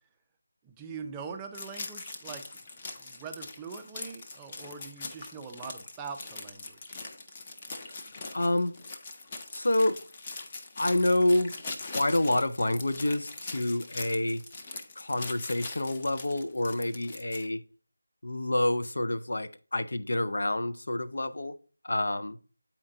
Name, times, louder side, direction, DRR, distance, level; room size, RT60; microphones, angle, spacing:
voice 1, 0.6-2.6 3.0-7.1, right 5 dB, 10° right, 0.5 m, -43 dB
sound 1, 1.5-17.5, left 3 dB, 25° left, 0.7 m, -42 dB
voice 2, 7.9-8.8 9.5-10.0 10.8-14.4 15.0-17.6 18.2-21.5 21.8-22.4, left 1 dB, 65° left, 0.6 m, -28 dB
8.6 x 4.5 x 3.8 m
figure-of-eight pair, 170°, 0 cm